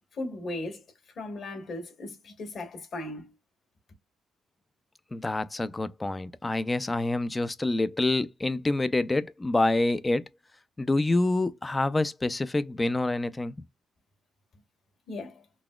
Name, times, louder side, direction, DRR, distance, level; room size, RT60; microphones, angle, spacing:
voice 1, 0.1-0.8 1.1-3.3 15.1-15.4, left 2 dB, 55° left, 1.7 m, -37 dB
voice 2, 5.1-10.2 10.8-13.6, left 2 dB, 20° left, 0.5 m, -27 dB
4.0 x 2.8 x 2.3 m
cardioid pair, 90°, 0 cm